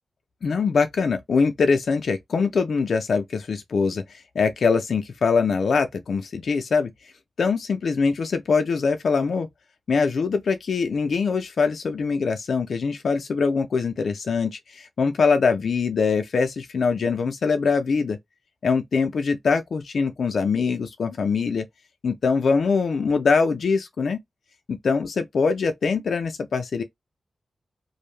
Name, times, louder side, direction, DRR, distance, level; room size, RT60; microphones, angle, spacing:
voice 1, 0.4-6.9 7.4-9.5 9.9-18.2 18.6-21.7 22.0-24.2 24.7-26.8, left 5 dB, 65° left, 0.4 m, -23 dB
2.5 x 2.1 x 3.1 m
wide cardioid pair, 130°, 0 cm